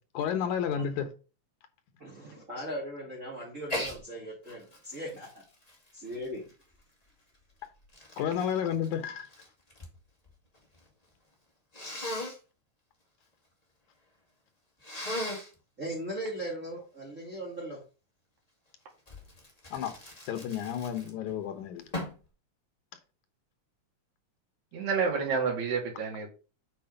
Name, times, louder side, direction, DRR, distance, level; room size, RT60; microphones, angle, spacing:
voice 1, 0.1-1.1 8.2-9.3 19.7-19.9 20.3-21.8, left 8 dB, 85° left, 9 dB, 2.6 m, -31 dB
voice 2, 2.0-5.4 5.9-6.4 15.8-17.8, right 1 dB, 30° right, -3 dB, 2.3 m, -38 dB
Sneeze, 3.7-4.0 4.5-6.8 7.5-10.0 10.2-10.9 11.7-12.4 14.8-15.5 19.1-21.3 21.9-22.3, left 1 dB, 15° left, 1.7 m, -38 dB
voice 3, 24.7-26.3, right 5 dB, 70° right, -1 dB, 3.4 m, -29 dB
8.5 x 4.4 x 5.2 m, 0.34 s
omnidirectional pair, 3.4 m